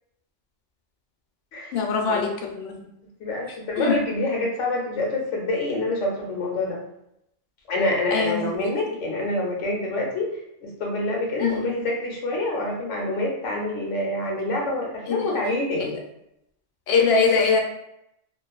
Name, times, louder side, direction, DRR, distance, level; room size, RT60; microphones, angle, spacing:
voice 1, 1.7-2.9 3.8-4.0 8.1-8.4 11.4-11.7 15.1-15.2 15.8-15.9 16.9-17.6, left 5 dB, 65° left, 2 dB, 0.7 m, -22 dB
voice 2, 3.2-6.8 7.7-16.0, left 2 dB, 85° left, -1 dB, 1.1 m, -26 dB
2.6 x 2.3 x 2.2 m, 0.79 s
omnidirectional pair, 1.2 m